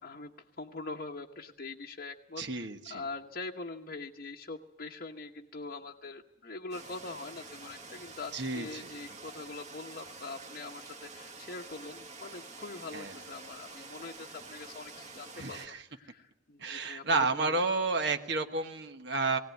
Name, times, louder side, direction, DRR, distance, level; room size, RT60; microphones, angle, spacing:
voice 1, 0.0-17.7, left 3 dB, 45° left, 0 dB, 1.0 m, -43 dB
voice 2, 2.4-3.0 8.3-8.9 12.9-13.1 15.4-15.8 16.6-19.4, right 3 dB, 55° right, 7 dB, 1.2 m, -31 dB
sound 1, 6.7-15.7, right 3 dB, 35° right, 1.7 m, -48 dB
19.5 x 18.0 x 9.4 m, 0.89 s
head